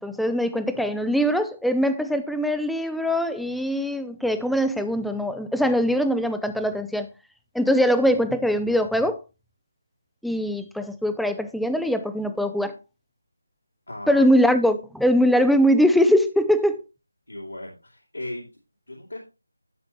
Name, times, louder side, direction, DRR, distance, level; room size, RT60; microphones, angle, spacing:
voice 1, 0.0-7.1 7.5-9.2 10.2-12.7 14.1-16.8, equal, ahead, 0.4 m, -22 dB
voice 2, 13.9-14.3 17.3-18.5 18.9-19.2, left 1 dB, 80° left, 2.9 m, -36 dB
12.5 x 6.8 x 3.0 m
figure-of-eight pair, 160°, 0 cm